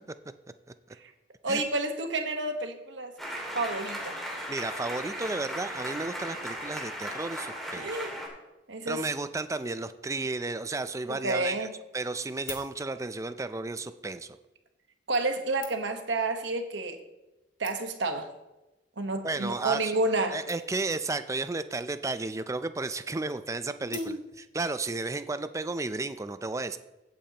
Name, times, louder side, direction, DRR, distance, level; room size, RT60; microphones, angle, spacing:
voice 1, 1.4-3.2 3.5-4.2 7.8-8.1 8.7-9.0 11.1-11.7 15.1-17.0 17.6-18.3 19.0-20.5 23.9-24.2, right 2 dB, 65° right, 6 dB, 1.2 m, -30 dB
sound 1, 3.2-8.3, equal, ahead, 2.2 m, -37 dB
voice 2, 4.5-8.0 8.9-11.7 11.9-14.4 19.2-19.9 20.3-26.8, right 3 dB, 15° right, 11 dB, 0.4 m, -33 dB
sound 2, 12.3-13.3 14.2-14.3 15.1-16.1 16.9-17.0 17.3-17.4 17.6-18.2 18.9-19.1 19.4-19.5 19.7-19.8 20.0-20.1 20.5-21.0 22.0-22.4 23.9-24.6 25.1-25.2, left 7 dB, 80° left, 1.7 m, -48 dB
16.0 x 8.5 x 2.9 m, 1.0 s
head